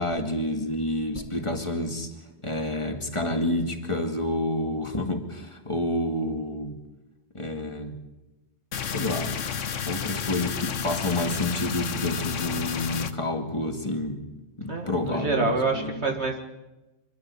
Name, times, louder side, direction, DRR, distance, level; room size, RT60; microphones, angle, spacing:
voice 1, 0.0-2.1 2.4-6.8 7.3-7.9 8.8-9.4 9.8-14.2 14.6-16.1, left 1 dB, 25° left, 4 dB, 2.3 m, -29 dB
sound 1, 8.7-13.1, left 7 dB, 75° left, 1.3 m, -31 dB
voice 2, 14.7-16.4, right 3 dB, 60° right, 3 dB, 2.2 m, -27 dB
26.5 x 12.5 x 8.5 m, 1.1 s
omnidirectional pair, 1.3 m